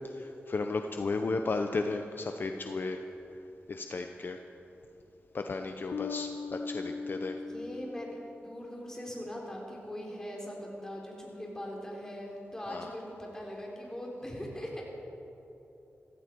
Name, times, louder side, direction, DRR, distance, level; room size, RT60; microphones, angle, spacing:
voice 1, 0.1-3.0 3.7-4.4 5.3-7.4 12.7-12.9, left 3 dB, 50° left, 5 dB, 0.7 m, -34 dB
Bass guitar, 5.9-8.9, left 4 dB, 90° left, 0.6 m, -40 dB
voice 2, 7.5-14.8, equal, 15° left, -2 dB, 3.7 m, -41 dB
15.5 x 15.5 x 4.6 m, 3.0 s
wide cardioid pair, 80°, 4 cm